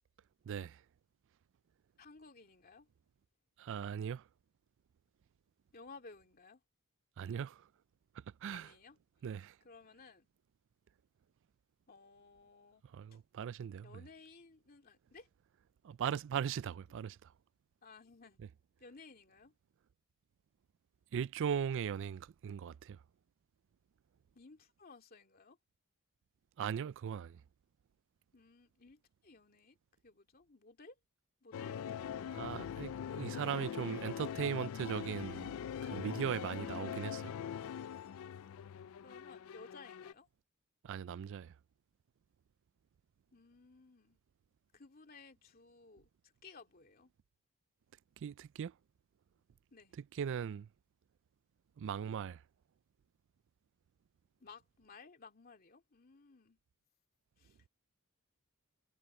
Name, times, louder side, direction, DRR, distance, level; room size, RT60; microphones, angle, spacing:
voice 1, 0.5-0.8 3.6-4.2 7.2-7.6 8.4-8.7 9.2-9.5 12.9-14.0 15.8-17.2 21.1-23.0 26.6-27.4 32.3-35.5 35.8-37.3 40.8-41.5 48.2-48.7 50.2-50.7 51.8-52.4, right 8 dB, 55° right, 0.3 m, -38 dB
voice 2, 2.0-2.9 5.7-6.6 8.5-9.0 9.6-10.3 11.9-12.8 13.8-15.3 17.8-18.4 18.8-19.5 24.3-25.6 28.3-29.8 30.0-31.0 31.4-32.3 36.6-36.8 39.0-40.3 43.3-44.2 44.7-47.1 49.7-50.0 54.4-56.6 57.4-57.6, left 4 dB, 40° left, 2.5 m, -57 dB
sound 1, 31.5-40.1, left 8 dB, 65° left, 0.3 m, -42 dB
head